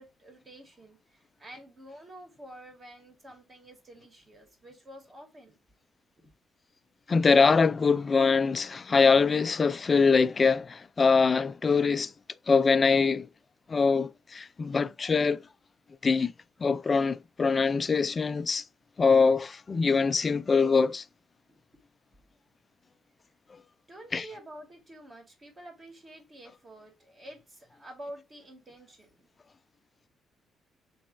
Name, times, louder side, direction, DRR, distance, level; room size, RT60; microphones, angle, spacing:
voice 1, 0.0-5.6 23.9-29.3, right 1 dB, 35° right, 2.0 m, -48 dB
voice 2, 7.1-12.1 12.5-13.3 13.7-15.4 16.0-16.3 16.6-18.6 19.0-21.0 24.1-24.3, left 5 dB, 35° left, 0.3 m, -23 dB
3.4 x 3.1 x 4.3 m
cardioid pair, 90°, 0 cm